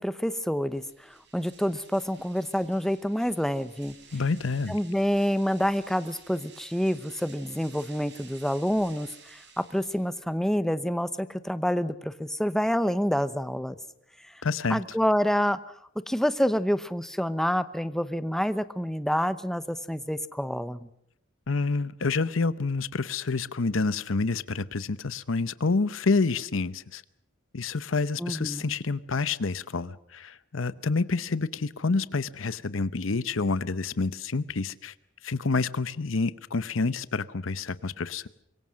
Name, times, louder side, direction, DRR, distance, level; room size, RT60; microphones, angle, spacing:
voice 1, 0.0-3.9 4.7-13.8 14.2-14.3 14.7-15.6 16.1-20.9 28.2-28.8, equal, ahead, 0.9 m, -28 dB
sound 1, 0.7-10.3, right 6 dB, 60° right, 4.8 m, -53 dB
voice 2, 4.1-4.8 14.4-14.8 21.5-27.0 27.5-34.9 35.2-38.3, left 4 dB, 80° left, 0.8 m, -28 dB
25.5 x 22.5 x 6.4 m
head